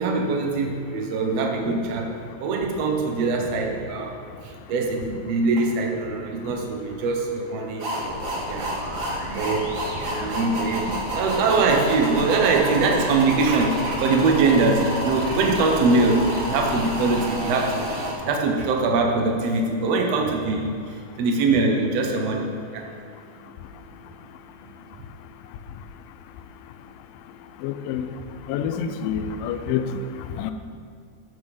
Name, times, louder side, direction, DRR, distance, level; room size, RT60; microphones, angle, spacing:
voice 1, 0.0-4.1 4.4-7.9 8.5-8.8 9.2-18.0 18.2-22.9, right 3 dB, 80° right, 2 dB, 1.4 m, -23 dB
sound 1, 7.8-18.1, equal, 40° right, 2.1 m, -29 dB
voice 2, 27.6-28.1 28.5-29.9 30.4-30.5, left 8 dB, 80° left, 8 dB, 2.1 m, -27 dB
14.5 x 9.1 x 3.5 m, 2.1 s
omnidirectional pair, 4.4 m